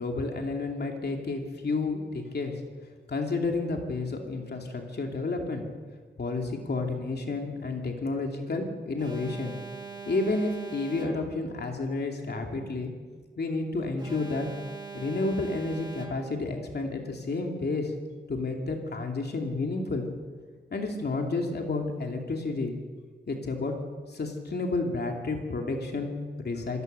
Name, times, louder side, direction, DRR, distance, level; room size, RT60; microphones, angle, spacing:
voice 1, 0.0-2.5 3.1-5.6 6.2-9.5 10.1-12.9 13.4-14.5 14.9-17.9 18.3-20.1 20.7-22.7 23.3-23.7 24.1-26.8, left 3 dB, 60° left, 2 dB, 2.7 m, -31 dB
Alarm, 9.0-11.5 14.0-16.5, right 4 dB, 20° right, 2.0 m, -42 dB
27.0 x 17.0 x 6.8 m, 1.5 s
wide cardioid pair, 155°, 20 cm